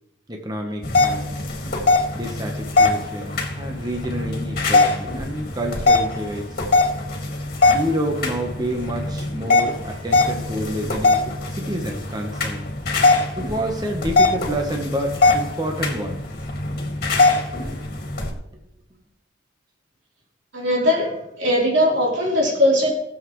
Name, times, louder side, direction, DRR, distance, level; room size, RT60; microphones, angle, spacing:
voice 1, 0.3-1.3 2.1-6.6 7.7-12.7 13.4-16.2, equal, 20° right, 2 dB, 1.1 m, -28 dB
sound 1, 0.8-18.3, left 3 dB, 55° left, 2.2 m, -21 dB
voice 2, 20.5-22.9, left 1 dB, 80° right, -3 dB, 3.7 m, -19 dB
19.5 x 7.4 x 3.2 m, 0.85 s
head